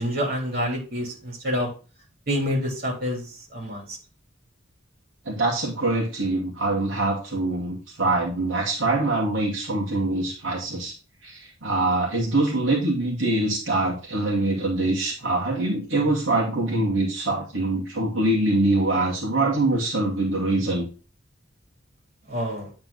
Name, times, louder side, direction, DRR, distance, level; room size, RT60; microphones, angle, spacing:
voice 1, 0.0-1.7 2.3-3.3 3.5-3.8 22.3-22.7, equal, 45° right, -1 dB, 3.3 m, -27 dB
voice 2, 5.3-10.9 11.2-20.8, right 2 dB, 75° right, -3 dB, 2.4 m, -24 dB
9.5 x 4.3 x 4.0 m, 0.35 s
head